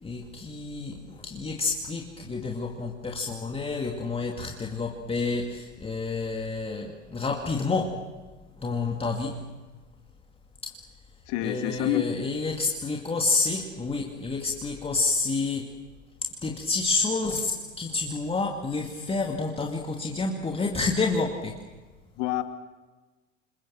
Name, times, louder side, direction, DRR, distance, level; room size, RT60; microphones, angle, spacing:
voice 1, 0.0-8.0 8.6-9.4 10.6-10.7 11.4-15.7 16.2-21.6, left 3 dB, 15° left, 2 dB, 2.4 m, -29 dB
voice 2, 11.3-12.1 22.2-22.4, left 13 dB, 45° left, 8 dB, 2.4 m, -27 dB
28.5 x 27.0 x 7.6 m, 1.3 s
figure-of-eight pair, 80°, 38 cm